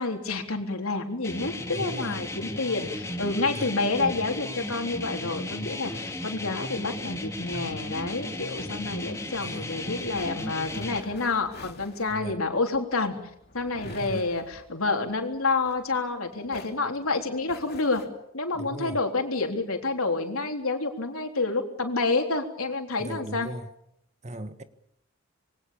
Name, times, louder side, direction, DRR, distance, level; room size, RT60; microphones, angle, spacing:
voice 1, 0.0-13.1 13.5-18.0 18.3-23.5, left 3 dB, 85° left, 3.7 m, -29 dB
sound 1, 1.2-11.0, left 1 dB, 15° left, 2.2 m, -35 dB
voice 2, 1.6-2.2 3.5-3.7 9.4-9.7 12.1-12.4 13.8-14.3 18.5-19.0 23.0-23.7 24.2-24.6, right 1 dB, 35° right, 1.5 m, -37 dB
sound 2, 7.2-16.2 16.5-18.1, left 2 dB, 50° left, 2.9 m, -47 dB
26.5 x 22.5 x 7.2 m
head